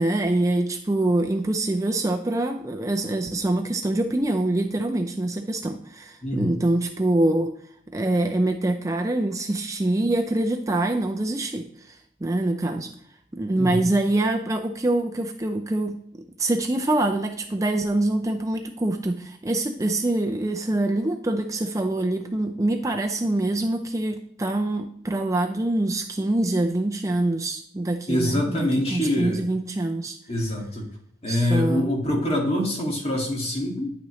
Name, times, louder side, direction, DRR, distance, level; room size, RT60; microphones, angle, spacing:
voice 1, 0.0-7.5 7.9-12.9 13.3-30.2 31.3-31.9, right 2 dB, 20° right, 4 dB, 0.5 m, -25 dB
voice 2, 6.2-6.5 13.6-13.8 28.1-29.4 30.3-30.9 31.2-33.9, left 1 dB, 35° left, -1 dB, 2.0 m, -25 dB
9.7 x 5.9 x 3.1 m, 0.63 s
head